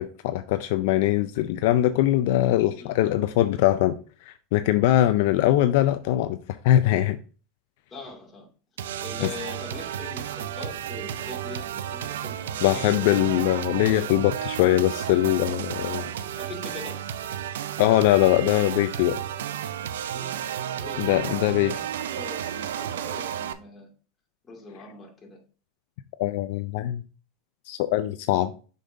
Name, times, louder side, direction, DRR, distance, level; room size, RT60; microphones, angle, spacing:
voice 1, 0.0-6.4 6.6-7.2 9.2-9.3 12.6-16.1 17.8-19.2 21.0-21.7 26.2-27.0 27.7-28.5, left 14 dB, 70° left, 0.4 m, -22 dB
voice 2, 7.9-8.5 9.0-13.3 16.2-17.1 20.1-20.3 20.8-21.8 22.1-23.9 24.4-25.4, left 3 dB, 25° left, 2.2 m, -42 dB
sound 1, 8.8-23.5, right 10 dB, 85° right, 0.4 m, -32 dB
6.6 x 5.4 x 2.6 m
hypercardioid pair, 105°, 0 cm